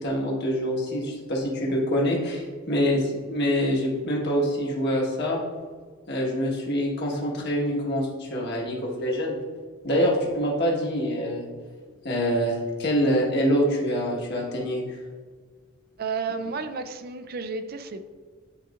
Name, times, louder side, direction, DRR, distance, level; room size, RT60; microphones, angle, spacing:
voice 1, 0.0-5.4 6.1-9.4 9.8-11.5 12.0-15.0, equal, 55° left, -3 dB, 1.5 m, -25 dB
voice 2, 16.0-18.0, right 4 dB, 45° right, 10 dB, 0.4 m, -32 dB
10.0 x 3.9 x 2.5 m, 1.5 s
head